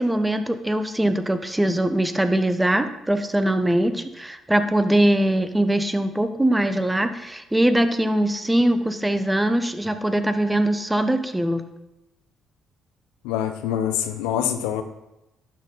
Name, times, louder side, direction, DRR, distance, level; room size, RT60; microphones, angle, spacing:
voice 1, 0.0-11.6, right 1 dB, 10° right, 9 dB, 0.8 m, -22 dB
voice 2, 13.2-14.8, left 10 dB, 85° left, 9 dB, 0.5 m, -25 dB
11.5 x 4.1 x 3.8 m, 0.93 s
hypercardioid pair, 55°, 0 cm